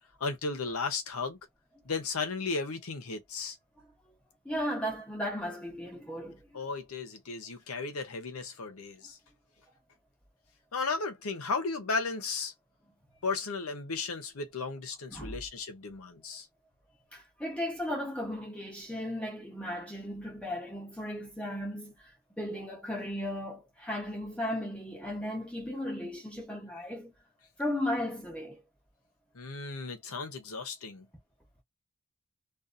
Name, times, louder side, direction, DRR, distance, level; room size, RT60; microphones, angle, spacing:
voice 1, 0.2-1.4 1.9-3.5 6.5-9.2 10.7-12.5 13.2-16.5 29.3-31.1, left 4 dB, 90° left, 0.8 m, -35 dB
voice 2, 4.4-6.6 15.1-15.4 17.1-27.1 27.6-28.6, left 1 dB, 5° left, 0.9 m, -36 dB
2.6 x 2.4 x 2.4 m
head